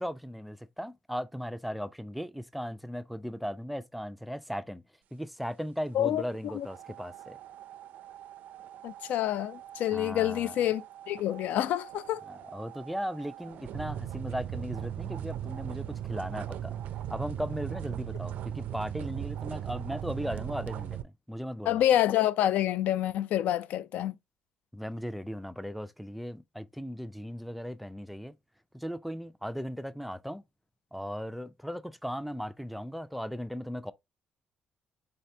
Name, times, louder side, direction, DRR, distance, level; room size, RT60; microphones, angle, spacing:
voice 1, 0.0-4.8 5.1-7.4 9.9-10.6 12.3-16.7 17.1-21.8 24.7-28.3 28.7-30.4 30.9-33.9, equal, ahead, 0.3 m, -37 dB
voice 2, 5.9-6.7 8.8-12.2 21.7-24.2, left 12 dB, 80° left, 0.3 m, -28 dB
sound 1, 6.6-21.0, right 11 dB, 75° right, 0.4 m, -39 dB
4.0 x 2.8 x 3.2 m
cardioid pair, 115°, 3 cm